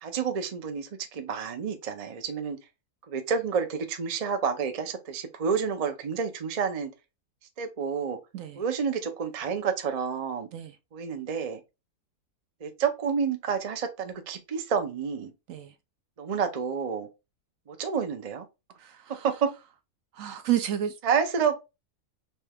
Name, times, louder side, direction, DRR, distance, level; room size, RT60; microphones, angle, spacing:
voice 1, 0.0-2.6 3.1-6.9 7.6-8.2 8.6-10.5 10.9-11.6 12.6-15.3 16.2-17.1 17.7-18.5 19.2-19.5 21.0-21.7, right 6 dB, 40° right, 0.5 m, -29 dB
voice 2, 18.8-19.2 20.1-21.0, right 11 dB, 70° right, 0.9 m, -30 dB
4.2 x 3.3 x 3.5 m
omnidirectional pair, 1.6 m